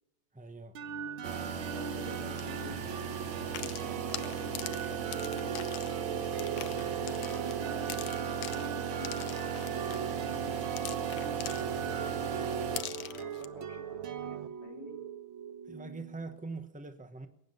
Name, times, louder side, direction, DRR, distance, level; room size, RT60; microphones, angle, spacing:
voice 1, 0.3-0.8 15.7-17.3, right 3 dB, 10° right, 0.4 m, -43 dB
sound 1, 0.7-16.4, right 6 dB, 85° right, 1.9 m, -41 dB
sound 2, 1.2-12.8, right 8 dB, 65° right, 1.7 m, -36 dB
voice 2, 1.7-8.0 8.5-10.6 10.9-15.0, left 3 dB, 40° left, 1.4 m, -49 dB
sound 3, 2.3-2.5 3.4-12.1 12.5-13.4, left 12 dB, 75° left, 1.4 m, -43 dB
22.0 x 9.9 x 5.4 m
omnidirectional pair, 2.1 m